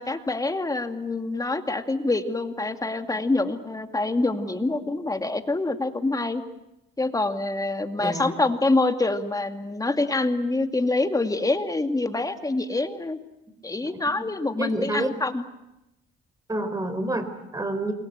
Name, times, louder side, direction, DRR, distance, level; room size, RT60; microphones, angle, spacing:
voice 1, 0.0-6.4 7.0-13.2 13.6-15.4, left 2 dB, 15° left, 7 dB, 2.2 m, -26 dB
voice 2, 8.0-8.3 13.9-14.3 14.6-15.1 16.5-17.9, right 1 dB, 15° right, 11 dB, 4.0 m, -29 dB
28.0 x 22.5 x 8.1 m, 0.91 s
cardioid pair, 90°, 20 cm